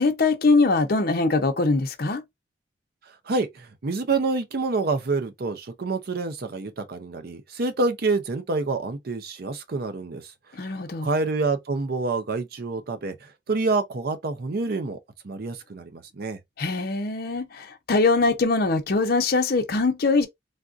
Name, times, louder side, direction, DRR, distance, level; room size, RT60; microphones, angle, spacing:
voice 1, 0.0-2.2 10.5-11.1 16.6-20.3, left 3 dB, 55° left, 0.7 m, -22 dB
voice 2, 3.1-10.3 10.7-10.8 11.0-15.0 15.2-16.4, right 3 dB, 55° right, 0.5 m, -27 dB
3.5 x 2.4 x 2.4 m
head